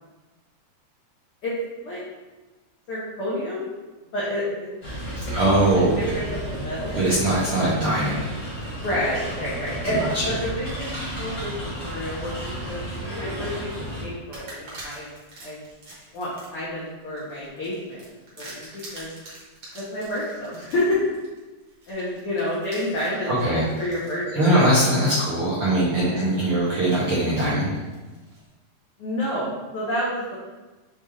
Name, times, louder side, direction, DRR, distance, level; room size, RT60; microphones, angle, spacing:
voice 1, 2.9-3.7 4.1-4.7 5.2-7.0 8.8-12.3 12.6-15.1 15.4-15.6 16.1-18.0 18.4-19.1 19.7-21.0 21.9-24.6 26.1-26.3 29.0-30.4, left 1 dB, 80° left, -7 dB, 1.2 m, -29 dB
sound 1, 4.8-14.0, equal, 40° left, 1.0 m, -33 dB
voice 2, 5.3-5.9 6.9-8.3 9.8-10.3 23.3-23.9 24.3-27.8, right 1 dB, 75° right, -9 dB, 1.3 m, -21 dB
sound 2, 11.5-11.7 12.2-13.2 13.6-13.8 14.3-24.2 24.8-24.9 26.0-26.4 26.8-28.5, right 2 dB, 55° right, 1.3 m, -45 dB
6.9 x 2.4 x 3.2 m, 1.2 s
omnidirectional pair, 3.7 m